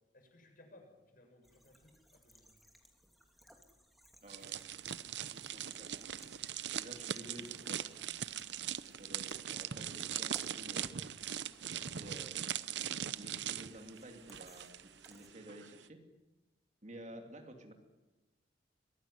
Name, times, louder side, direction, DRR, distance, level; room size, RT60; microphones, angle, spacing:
voice 1, 0.1-2.5 17.0-17.3, left 1 dB, 50° left, 3 dB, 7.4 m, -62 dB
sound 1, 1.4-15.3, equal, ahead, 2.8 m, -64 dB
voice 2, 4.2-4.6 5.3-6.1 6.7-7.8 8.9-11.0 11.7-12.4 13.2-16.0 16.8-17.7, right 1 dB, 40° right, 5 dB, 2.6 m, -52 dB
sound 2, 4.3-15.1 15.4-15.7, right 9 dB, 65° right, 0.8 m, -40 dB
23.5 x 18.5 x 10.0 m, 1.1 s
head